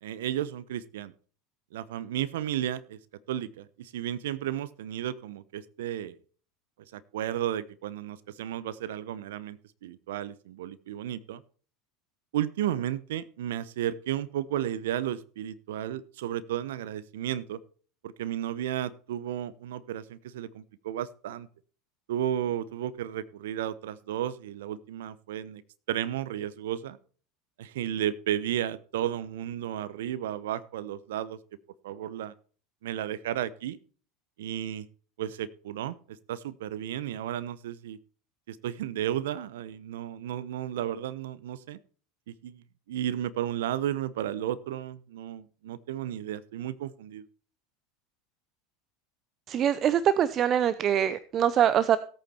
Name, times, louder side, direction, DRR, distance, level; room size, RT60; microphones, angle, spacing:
voice 1, 0.0-1.1 1.7-3.0 3.3-6.2 6.9-11.4 12.3-17.6 18.0-21.5 22.1-25.6 25.9-27.0 27.6-31.4 31.8-32.3 32.8-33.8 34.4-34.9 35.2-38.0 38.5-41.8 42.3-47.3, right 11 dB, 75° right, 17 dB, 0.9 m, -33 dB
voice 2, 49.5-52.0, right 9 dB, 40° right, 15 dB, 0.8 m, -24 dB
16.5 x 8.8 x 4.4 m, 0.42 s
hypercardioid pair, 85°, 0 cm